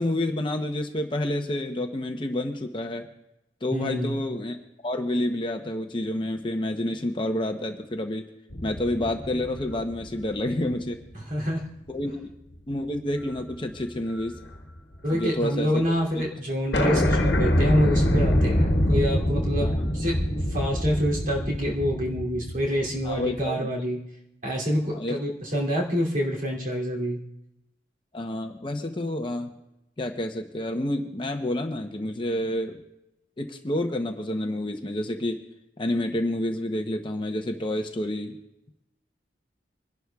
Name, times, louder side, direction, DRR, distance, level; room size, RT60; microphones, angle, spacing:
voice 1, 0.0-3.1 3.6-4.6 4.8-8.3 8.6-11.0 11.9-12.3 12.7-14.4 15.1-15.8 19.6-19.9 23.0-23.7 24.9-25.2 28.1-29.5 30.0-32.8 33.4-35.4 35.8-38.4, left 1 dB, 25° left, 4 dB, 0.7 m, -29 dB
voice 2, 3.7-4.2 11.3-11.6 15.0-20.2 20.5-24.0 24.4-27.2, equal, 45° right, -3 dB, 2.7 m, -27 dB
sound 1, 8.5-11.1 11.6-11.7 13.2-13.5 13.8-15.2 15.5-15.6 15.8-15.9 16.2-16.3 16.7-23.4, equal, 70° left, 1.3 m, -25 dB
26.0 x 11.5 x 2.3 m, 0.89 s
head